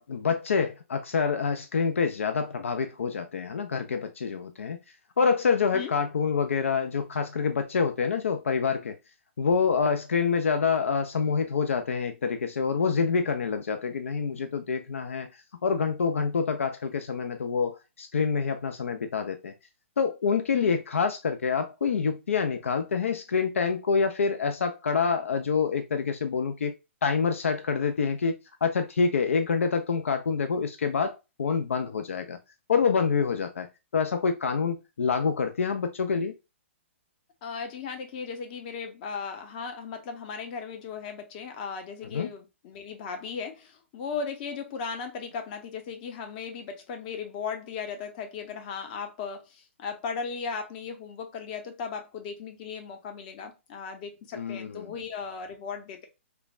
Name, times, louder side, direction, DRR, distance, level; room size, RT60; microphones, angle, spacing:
voice 1, 0.0-4.8 5.2-9.0 9.4-15.3 15.6-19.5 20.0-26.7 27.0-32.4 32.7-33.7 33.9-36.3 42.1-42.3 54.3-54.9, left 5 dB, 80° left, 0.4 m, -27 dB
voice 2, 37.4-56.1, left 5 dB, 40° left, 0.7 m, -37 dB
3.1 x 2.1 x 2.3 m
hypercardioid pair, 130°, 7 cm